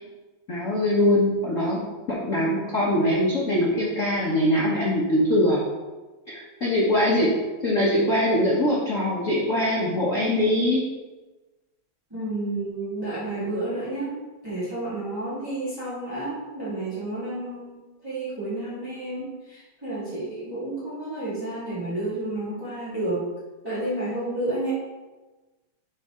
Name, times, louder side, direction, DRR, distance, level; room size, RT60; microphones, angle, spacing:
voice 1, 0.5-1.8 2.1-5.6 6.3-7.3 7.6-10.8, left 1 dB, 60° left, -5 dB, 0.8 m, -22 dB
voice 2, 12.1-14.1 14.4-23.2 23.6-24.7, right 2 dB, 10° right, -12 dB, 1.8 m, -31 dB
11.5 x 4.3 x 3.7 m, 1.2 s
omnidirectional pair, 3.5 m